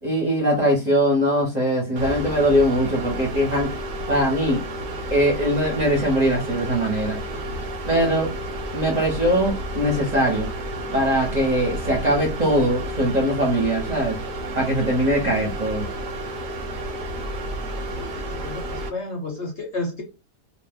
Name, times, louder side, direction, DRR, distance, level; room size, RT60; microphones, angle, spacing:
voice 1, 0.0-3.7 4.1-4.6 5.1-7.2 7.9-8.3 8.7-10.5 10.9-14.2 14.5-15.9, equal, 30° right, -3 dB, 0.9 m, -21 dB
sound 1, 2.0-18.9, right 1 dB, 65° right, 1.0 m, -31 dB
voice 2, 17.9-20.0, left 2 dB, 55° left, 0 dB, 0.9 m, -32 dB
2.5 x 2.4 x 3.5 m, 0.28 s
omnidirectional pair, 1.7 m